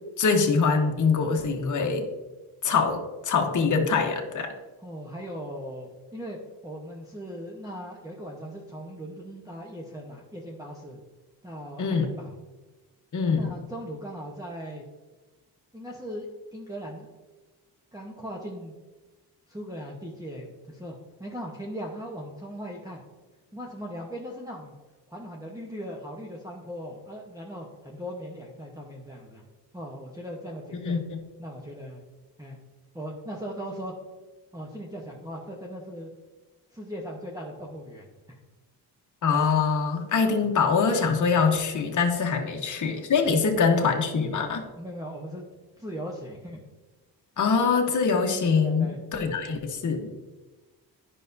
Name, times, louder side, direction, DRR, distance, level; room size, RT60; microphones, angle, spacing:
voice 1, 0.2-2.1 2.6-4.5 11.8-12.1 13.1-13.5 30.8-31.2 39.2-44.6 47.4-50.1, left 5 dB, 45° left, 2 dB, 1.1 m, -24 dB
voice 2, 4.8-6.4 6.6-11.0 11.4-12.4 13.4-14.8 15.7-17.1 17.9-18.7 19.5-20.9 21.2-23.0 23.5-24.7 25.1-29.4 29.7-31.0 31.4-32.0 32.4-32.6 32.9-33.9 34.5-36.1 36.7-38.1 42.3-42.4 44.8-45.5 45.8-46.6 48.5-49.6, equal, 10° right, -2 dB, 1.0 m, -39 dB
10.0 x 5.5 x 2.7 m, 1.2 s
cardioid pair, 80°, 41 cm